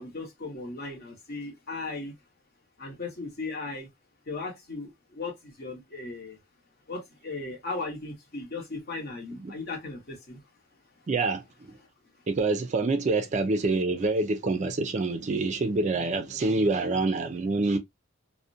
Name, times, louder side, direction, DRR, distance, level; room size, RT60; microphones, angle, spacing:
voice 1, 0.0-2.1 2.8-3.9 4.3-6.4 6.9-10.4, left 3 dB, 50° left, 0.9 m, -37 dB
voice 2, 11.1-11.7 12.3-17.8, right 3 dB, 35° right, 0.4 m, -26 dB
2.4 x 2.1 x 2.5 m
head